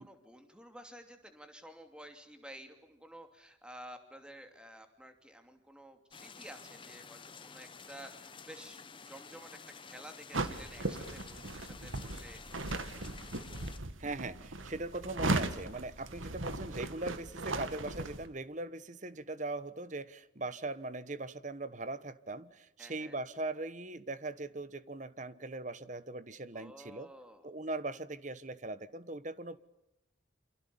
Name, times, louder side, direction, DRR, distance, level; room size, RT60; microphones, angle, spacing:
voice 1, 0.0-12.4 22.8-23.2 26.5-27.5, equal, 5° right, 6 dB, 2.7 m, -52 dB
sound 1, 6.1-13.8, left 5 dB, 25° left, 1.2 m, -51 dB
sound 2, 10.3-18.3, right 2 dB, 90° right, 2.1 m, -37 dB
voice 2, 14.0-27.1 27.4-29.6, right 2 dB, 40° right, 15 dB, 1.2 m, -40 dB
28.5 x 26.5 x 7.1 m, 0.85 s
head